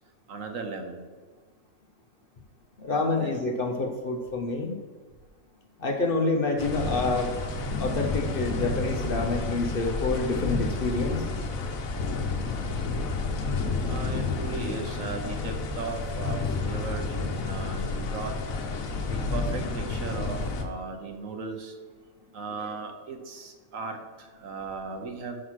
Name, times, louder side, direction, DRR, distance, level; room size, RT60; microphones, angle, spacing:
voice 1, 0.3-1.0 3.2-3.3 13.8-18.3 19.1-21.7 22.3-25.4, right 4 dB, 70° right, 5 dB, 1.3 m, -37 dB
voice 2, 2.8-4.8 5.8-7.3 7.8-11.3, left 3 dB, 50° left, 3 dB, 0.8 m, -27 dB
Interior Atmos Rain Thunder - Darwin, 6.6-20.6, left 3 dB, 80° left, 1.2 m, -30 dB
5.8 x 4.9 x 6.2 m, 1.4 s
omnidirectional pair, 1.4 m